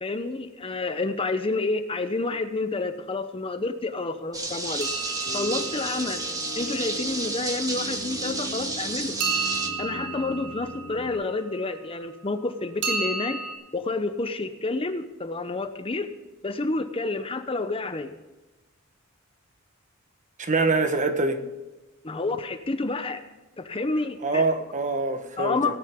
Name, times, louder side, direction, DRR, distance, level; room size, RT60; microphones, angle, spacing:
voice 1, 0.0-4.9 5.3-6.2 6.5-9.2 9.8-13.4 13.7-16.1 16.4-18.1 22.0-23.2 23.6-24.5 25.4-25.8, left 3 dB, 25° left, 9 dB, 0.8 m, -29 dB
sound 1, 4.3-9.7, right 2 dB, 20° right, 1.6 m, -31 dB
sound 2, 4.8-6.9 9.2-11.6 12.8-13.6, right 4 dB, 65° right, 3.1 m, -32 dB
sound 3, 5.2-11.1, equal, 50° left, 2.7 m, -40 dB
voice 2, 20.4-21.4 24.2-25.8, right 3 dB, 40° right, 7 dB, 1.3 m, -24 dB
18.0 x 10.0 x 3.7 m, 1.1 s
head